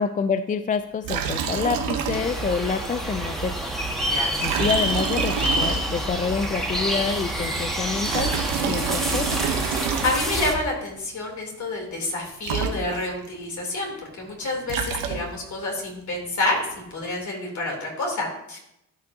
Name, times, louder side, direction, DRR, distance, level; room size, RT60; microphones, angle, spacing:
voice 1, 0.0-3.7 4.4-9.4, left 5 dB, 25° left, 10 dB, 0.4 m, -27 dB
Liquid, 1.0-2.6 2.8-2.9 4.3-6.2 7.8-10.5 12.1-12.2 12.4-13.3 14.4-15.5, right 7 dB, 90° right, 1.0 m, -28 dB
sound 1, 2.1-10.5, right 1 dB, ahead, 1.7 m, -27 dB
voice 2, 4.0-4.4 10.0-16.6 16.9-18.6, left 2 dB, 60° left, -1 dB, 3.1 m, -28 dB
12.5 x 5.4 x 2.7 m, 0.81 s
cardioid pair, 75°, 33 cm